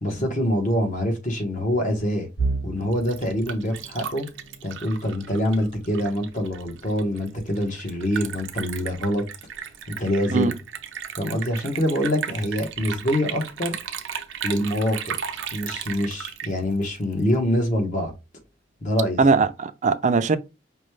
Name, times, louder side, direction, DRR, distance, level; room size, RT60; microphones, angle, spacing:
voice 1, 0.0-2.3 2.6-4.3 4.6-9.3 9.9-10.5 11.2-13.8 14.4-15.1 15.5-18.1 18.8-19.2, equal, 45° left, 1.2 m, -25 dB
sound 1, 2.4-14.2 14.6-14.9 15.3-15.4 16.3-16.8, right 3 dB, 75° left, 1.4 m, -38 dB
Liquid, 2.8-17.4, right 8 dB, 85° right, 0.6 m, -35 dB
voice 2, 19.2-20.4, right 4 dB, 40° right, 0.4 m, -20 dB
5.2 x 2.3 x 3.2 m
head